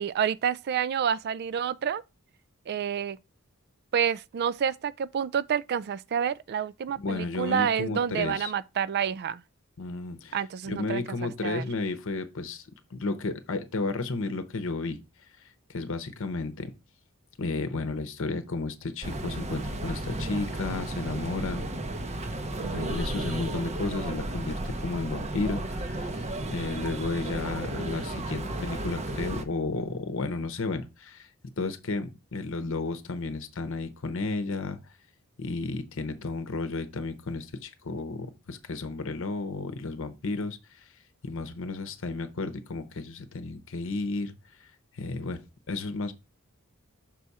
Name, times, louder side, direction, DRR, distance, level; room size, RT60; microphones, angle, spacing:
voice 1, 0.0-2.0 2.7-3.2 3.9-9.4 10.3-11.6 22.6-23.0, right 8 dB, 50° right, 0.3 m, -29 dB
voice 2, 7.0-8.5 9.8-10.4 10.7-15.0 15.4-16.7 17.4-21.7 22.6-31.3 31.6-34.8 35.4-46.1, left 3 dB, 65° left, 0.8 m, -33 dB
sound 1, 19.0-29.4, right 1 dB, 30° right, 0.7 m, -33 dB
6.1 x 4.1 x 4.7 m
head